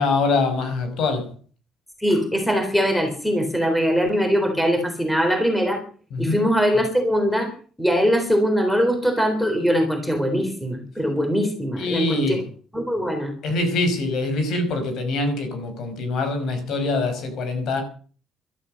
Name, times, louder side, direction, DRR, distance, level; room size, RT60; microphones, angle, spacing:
voice 1, 0.0-1.3 6.1-6.5 11.8-12.5 13.4-17.8, left 3 dB, 65° left, 5.4 m, -24 dB
voice 2, 2.0-5.8 6.2-7.5 7.8-12.4 12.7-13.3, equal, ahead, 3.8 m, -21 dB
14.5 x 13.0 x 6.5 m
cardioid pair, 170°, 0 cm